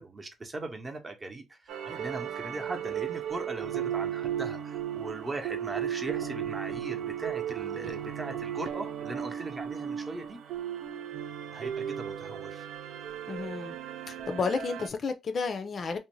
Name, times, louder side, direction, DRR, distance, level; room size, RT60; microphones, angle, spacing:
voice 1, 0.0-10.4 11.5-12.7, right 2 dB, 30° right, 0.7 m, -39 dB
sound 1, 1.7-14.9, right 9 dB, 75° right, 0.4 m, -35 dB
voice 2, 13.3-13.8 14.1-16.0, left 5 dB, 50° left, 0.4 m, -32 dB
2.5 x 2.1 x 3.0 m
cardioid pair, 90°, 0 cm